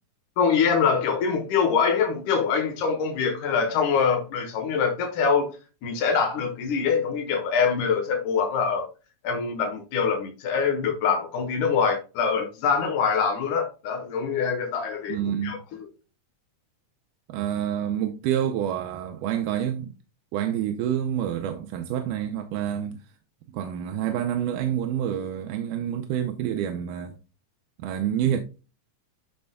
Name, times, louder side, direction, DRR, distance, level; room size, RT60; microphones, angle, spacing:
voice 1, 0.4-5.5 5.8-8.9 9.2-15.8, left 6 dB, 90° left, 2.6 m, -24 dB
voice 2, 15.1-15.6 17.3-19.9 20.3-23.0 23.5-27.1 27.8-28.4, right 10 dB, 90° right, 2.2 m, -28 dB
12.5 x 4.4 x 2.2 m
omnidirectional pair, 3.5 m